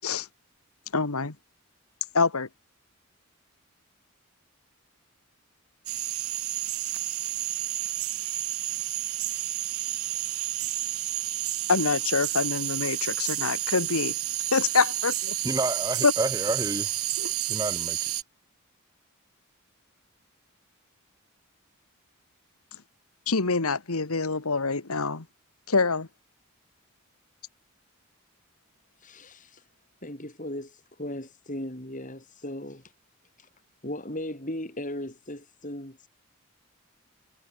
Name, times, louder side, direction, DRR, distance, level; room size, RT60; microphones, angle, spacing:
voice 1, 0.9-1.3 2.1-2.5 11.7-14.1 14.5-15.3 16.0-16.1 17.2-17.3 23.3-25.2 25.7-26.1, left 4 dB, 90° left, 1.6 m, -25 dB
sound 1, 5.9-18.2, right 15 dB, 85° right, 2.1 m, -30 dB
voice 2, 15.4-16.9 17.5-18.1, right 1 dB, 15° right, 6.5 m, -29 dB
voice 3, 29.0-29.6 30.0-32.9 33.4-33.5 33.8-36.1, left 1 dB, 35° left, 6.0 m, -37 dB
head